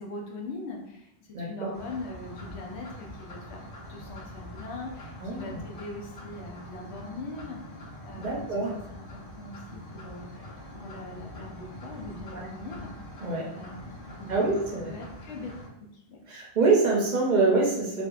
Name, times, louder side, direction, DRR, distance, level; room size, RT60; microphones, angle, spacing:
voice 1, 0.0-3.6 3.9-7.6 8.0-8.6 8.9-10.5 10.8-12.9 13.5-15.5 15.9-16.2, left 2 dB, 85° left, -1 dB, 0.9 m, -41 dB
voice 2, 1.3-1.7 5.2-5.6 8.2-8.7 12.3-12.4 13.2-13.5 14.3-14.9 16.3-18.1, right 3 dB, 50° right, -3 dB, 0.6 m, -25 dB
sound 1, 1.7-15.7, equal, 55° left, 1.0 m, -44 dB
2.7 x 2.4 x 2.3 m, 0.79 s
omnidirectional pair, 1.1 m